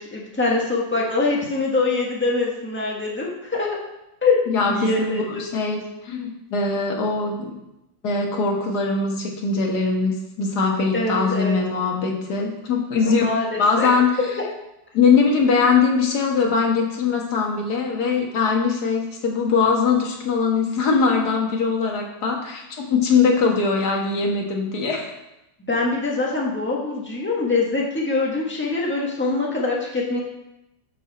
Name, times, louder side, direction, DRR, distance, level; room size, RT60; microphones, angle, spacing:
voice 1, 0.0-3.8 4.2-5.4 10.9-11.6 13.0-13.9 25.7-30.2, left 3 dB, 5° left, -3 dB, 1.5 m, -24 dB
voice 2, 4.5-7.5 8.0-13.2 13.6-14.1 14.9-25.1 26.1-26.2, left 5 dB, 60° left, 0 dB, 2.0 m, -21 dB
11.0 x 6.1 x 4.3 m, 0.90 s
omnidirectional pair, 2.0 m